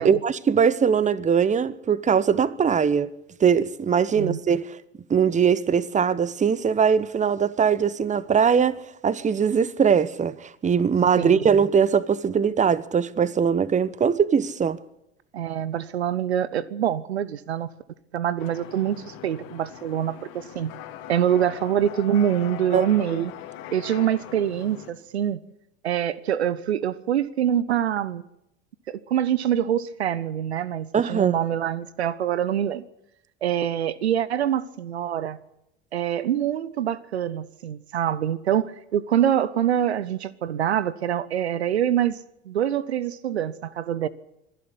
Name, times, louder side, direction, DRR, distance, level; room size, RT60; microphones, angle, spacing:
voice 1, 0.0-3.1 3.4-4.8 5.1-8.8 9.0-14.8 22.7-22.8 23.1-23.2 30.9-31.3, right 7 dB, 25° right, 1.0 m, -21 dB
voice 2, 4.1-4.4 11.2-11.4 15.3-17.7 18.1-20.7 21.1-23.3 23.7-25.4 25.8-28.2 28.9-32.8 33.4-35.4 35.9-42.2 42.5-44.1, right 10 dB, 80° right, 0.8 m, -25 dB
sound 1, 18.4-24.9, left 11 dB, 60° left, 2.7 m, -41 dB
24.5 x 11.5 x 9.9 m
figure-of-eight pair, 70°, 32 cm